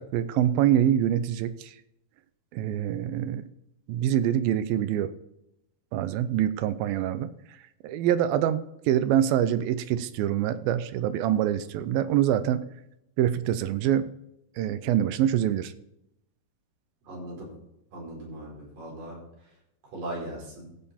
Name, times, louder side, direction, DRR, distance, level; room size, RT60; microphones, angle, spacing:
voice 1, 0.0-1.7 2.5-3.4 3.9-5.1 5.9-7.3 7.8-12.7 13.2-14.1 14.6-15.7, right 11 dB, 85° right, 13 dB, 2.4 m, -25 dB
voice 2, 17.1-17.5 17.9-19.2 19.9-20.7, right 1 dB, 65° right, -3 dB, 6.1 m, -38 dB
15.5 x 5.7 x 4.2 m, 0.81 s
omnidirectional pair, 4.2 m